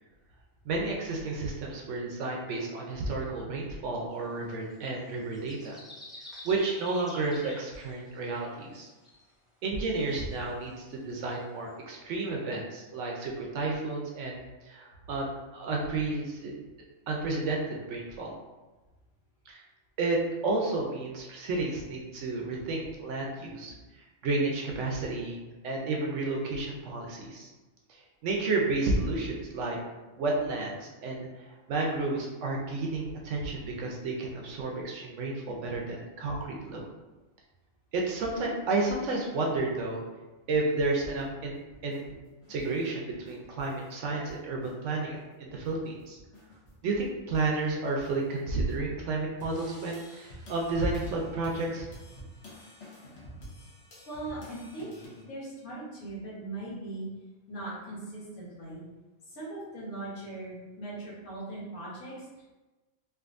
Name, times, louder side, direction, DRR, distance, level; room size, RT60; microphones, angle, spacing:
voice 1, 0.7-5.8 6.4-8.9 9.6-14.4 14.6-16.5 17.1-18.3 19.5-19.6 20.0-23.7 24.2-25.4 25.6-27.5 27.9-29.8 30.2-36.9 37.9-40.0 40.5-42.2 42.5-46.2 46.8-51.9, right 3 dB, 70° right, -1 dB, 0.8 m, -31 dB
sound 1, 4.2-8.8 9.0-9.3 9.9-10.4 10.7-10.8 11.3-11.4 11.7-11.8, left 1 dB, ahead, 0.6 m, -48 dB
sound 2, 41.0-43.9 44.3-44.8 45.1-45.2 45.5-48.7 49.4-55.2, equal, 55° left, 0.9 m, -50 dB
voice 2, 54.1-57.1 57.5-58.8 59.3-62.4, right 2 dB, 80° left, -6 dB, 1.5 m, -40 dB
3.5 x 2.5 x 2.4 m, 1.2 s
omnidirectional pair, 1.4 m